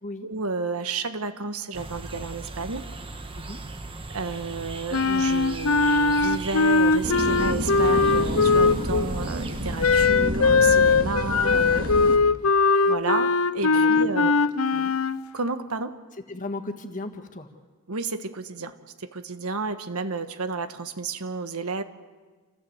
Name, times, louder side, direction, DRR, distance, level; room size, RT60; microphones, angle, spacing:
voice 1, 0.2-2.9 4.1-11.9 12.9-14.3 15.3-16.0 17.9-21.8, right 3 dB, 90° right, 9 dB, 1.4 m, -31 dB
sound 1, 1.7-10.1, right 2 dB, 25° right, 1.4 m, -38 dB
Wind instrument woodwind instrument, 4.9-9.1 9.8-15.2, left 4 dB, 70° left, 0.7 m, -20 dB
sound 2, 7.0-12.2, right 1 dB, 40° right, 2.2 m, -30 dB
voice 2, 11.7-12.2 13.7-13.9 14.2-14.3 14.7-14.9 16.3-17.5, left 2 dB, 35° left, 5 dB, 1.7 m, -37 dB
27.5 x 15.5 x 8.0 m, 1.4 s
head